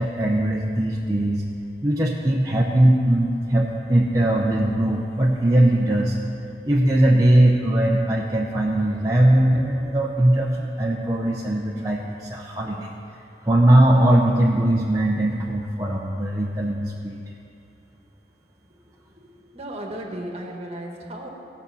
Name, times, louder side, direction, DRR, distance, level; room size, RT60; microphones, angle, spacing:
voice 1, 0.0-1.4 1.8-6.1 6.6-12.9 13.5-17.2, right 1 dB, 20° right, -3 dB, 0.7 m, -20 dB
voice 2, 19.2-21.3, right 1 dB, 35° right, 1 dB, 1.5 m, -35 dB
16.5 x 5.5 x 6.9 m, 2.7 s
head